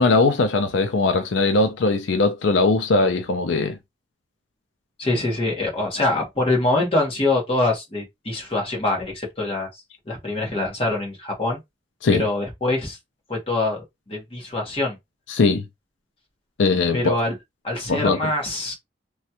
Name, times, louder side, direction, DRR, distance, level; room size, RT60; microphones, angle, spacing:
voice 1, 0.0-3.8 12.0-12.2 15.3-15.6 16.6-17.2 17.9-18.3, left 3 dB, 85° left, 0.5 m, -20 dB
voice 2, 5.0-9.7 10.1-11.6 12.1-13.0 13.3-13.8 14.1-15.0 16.9-17.4 17.6-18.7, left 2 dB, 30° left, 1.3 m, -24 dB
3.2 x 2.3 x 2.8 m
head